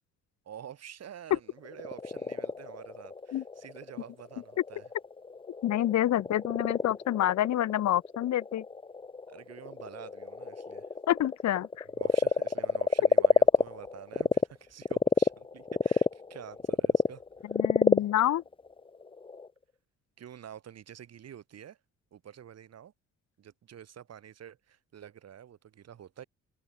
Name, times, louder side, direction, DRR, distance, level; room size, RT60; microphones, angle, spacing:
voice 1, 0.5-4.8 9.3-10.9 12.0-17.2 20.2-21.8 22.1-22.9 23.4-26.2, right 9 dB, 55° right, 2.0 m, -48 dB
Frog, 1.6-14.5 14.8-19.5, left 4 dB, 15° left, 0.7 m, -28 dB
voice 2, 5.6-8.6 11.1-11.8 17.5-18.4, left 12 dB, 65° left, 1.0 m, -27 dB
cardioid pair, 90°, 30 cm